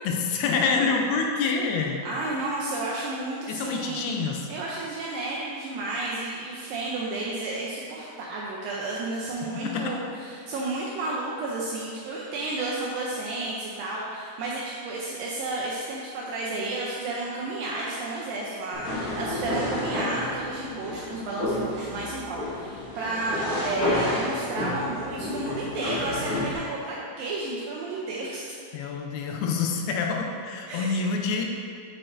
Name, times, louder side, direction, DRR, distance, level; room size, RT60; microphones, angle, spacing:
voice 1, 0.0-2.2 3.5-4.4 9.7-9.9 28.7-31.4, left 4 dB, 80° left, 2 dB, 2.5 m, -27 dB
voice 2, 2.0-4.2 4.5-28.5 30.7-31.1, right 2 dB, 85° right, -4 dB, 2.0 m, -32 dB
sound 1, 18.7-26.6, left 1 dB, 60° left, 2.7 m, -30 dB
7.8 x 6.1 x 2.6 m, 2.3 s
omnidirectional pair, 4.6 m